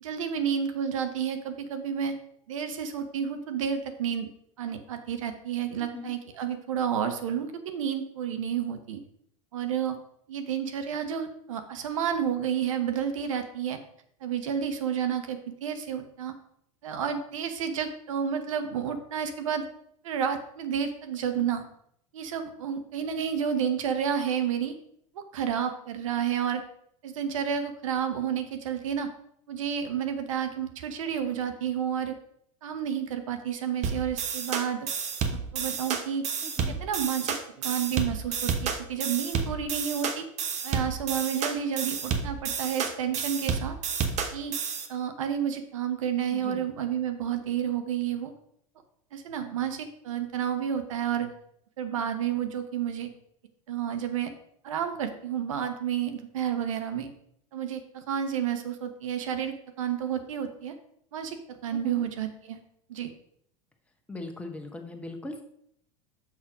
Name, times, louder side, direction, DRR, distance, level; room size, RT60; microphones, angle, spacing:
voice 1, 0.0-2.1 2.5-4.3 4.6-9.0 9.5-10.0 10.3-13.8 14.2-16.3 16.8-19.6 20.0-21.6 22.1-24.7 25.1-26.6 27.0-29.1 29.5-32.2 32.6-34.9 35.5-36.2 36.8-40.2 40.6-43.7 44.3-44.5 44.9-48.3 49.1-51.3 51.8-53.1 53.7-54.3 54.6-57.1 57.5-60.7 61.1-62.6 62.9-63.1, right 8 dB, 80° right, 8 dB, 1.0 m, -30 dB
voice 2, 5.8-6.1 36.4-36.8 46.3-46.6 61.7-62.0 64.1-65.4, left 2 dB, 10° left, 3 dB, 1.2 m, -40 dB
sound 1, 33.8-44.9, right 6 dB, 45° right, 1.1 m, -30 dB
6.3 x 6.1 x 4.9 m, 0.71 s
hypercardioid pair, 90°, 17 cm